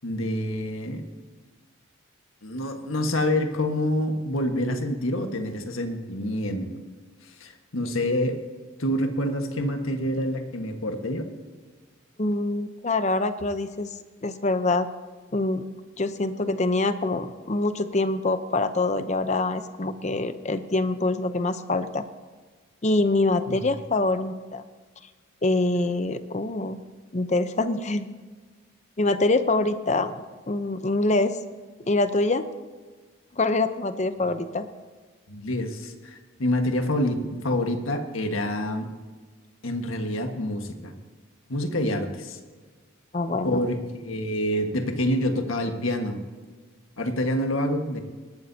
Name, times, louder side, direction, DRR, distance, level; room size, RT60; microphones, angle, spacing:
voice 1, 0.0-1.0 2.4-6.7 7.4-8.4 8.8-11.2 23.5-23.6 35.3-38.9 39.6-40.9 41.5-42.4 43.4-46.2 47.0-48.0, left 1 dB, 80° left, 5 dB, 1.6 m, -27 dB
voice 2, 12.2-13.9 14.2-14.9 15.3-15.6 16.0-22.0 22.8-24.6 25.4-26.8 27.1-28.1 29.0-30.1 30.5-31.4 31.9-32.5 33.3-34.7 43.1-43.6, left 2 dB, 35° left, 10 dB, 0.7 m, -25 dB
19.5 x 12.5 x 2.8 m, 1.4 s
head